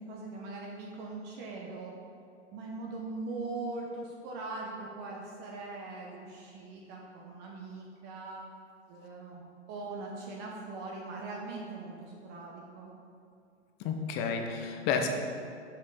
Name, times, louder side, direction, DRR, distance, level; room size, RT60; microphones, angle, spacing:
voice 1, 0.0-1.9 2.5-8.4 8.9-12.9, right 3 dB, 30° right, -2 dB, 0.9 m, -41 dB
voice 2, 13.8-15.1, left 6 dB, 30° left, 4 dB, 0.7 m, -31 dB
6.0 x 5.5 x 4.9 m, 2.4 s
hypercardioid pair, 120°, 36 cm